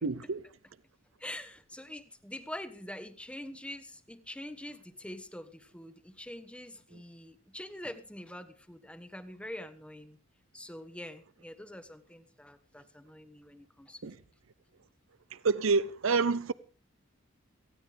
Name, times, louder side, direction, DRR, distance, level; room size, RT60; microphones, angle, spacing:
voice 1, 0.0-0.4 14.0-14.1 15.4-16.5, right 4 dB, 70° right, 0.7 m, -27 dB
voice 2, 1.2-10.2 10.5-14.0, left 1 dB, 5° left, 1.2 m, -45 dB
18.5 x 15.5 x 3.4 m
head